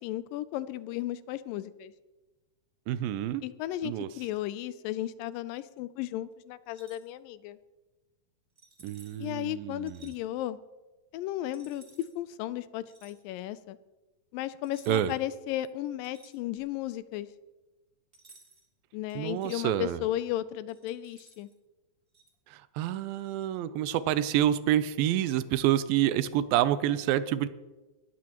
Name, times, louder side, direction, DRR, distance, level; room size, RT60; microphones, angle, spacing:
voice 1, 0.0-1.9 3.4-7.6 9.2-10.6 11.1-13.8 14.3-17.3 18.9-21.5, left 13 dB, 80° left, 15 dB, 2.2 m, -35 dB
voice 2, 2.9-3.4 3.8-4.1 8.8-10.1 14.9-15.1 19.2-20.0 22.5-27.5, right 12 dB, 85° right, 14 dB, 2.4 m, -28 dB
sound 1, 6.6-7.1 8.5-9.3 9.8-10.2 11.5-12.1 12.9-13.2 14.6-15.2 15.6-16.8 18.1-18.7 19.1-19.6 20.7-21.5 22.1-22.3, right 2 dB, 25° right, 1.3 m, -57 dB
19.0 x 14.0 x 3.0 m, 1.1 s
omnidirectional pair, 4.1 m